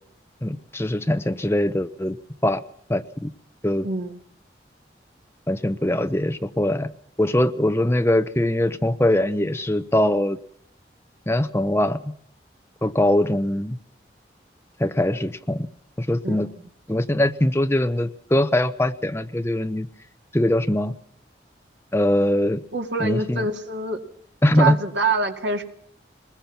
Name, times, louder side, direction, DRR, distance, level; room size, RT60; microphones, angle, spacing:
voice 1, 0.4-2.2 2.4-2.6 2.9-3.3 3.6-3.9 5.5-6.9 7.2-10.4 11.3-12.1 12.8-13.8 14.8-15.7 16.0-16.5 16.9-19.9 20.3-20.9 21.9-22.6 23.0-23.4 24.4-24.8, left 1 dB, 15° left, 10 dB, 0.8 m, -22 dB
voice 2, 3.8-4.2 16.2-16.6 22.7-24.0 24.6-25.6, right 3 dB, 85° right, 4 dB, 2.2 m, -25 dB
21.5 x 20.5 x 5.9 m, 0.67 s
head